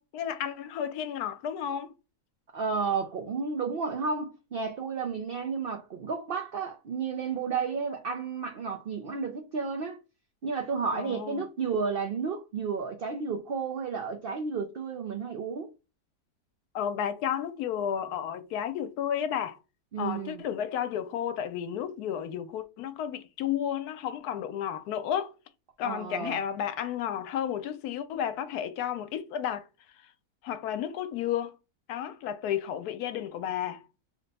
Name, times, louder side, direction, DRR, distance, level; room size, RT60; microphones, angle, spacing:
voice 1, 0.0-1.9 10.9-11.5 16.7-19.6 20.0-25.3 25.8-29.6 30.4-31.5 31.9-33.8, left 9 dB, 85° left, 1.1 m, -32 dB
voice 2, 2.5-10.0 10.4-15.7 19.9-20.4 25.8-26.4, right 5 dB, 90° right, 0.5 m, -32 dB
3.1 x 2.2 x 4.0 m
omnidirectional pair, 1.6 m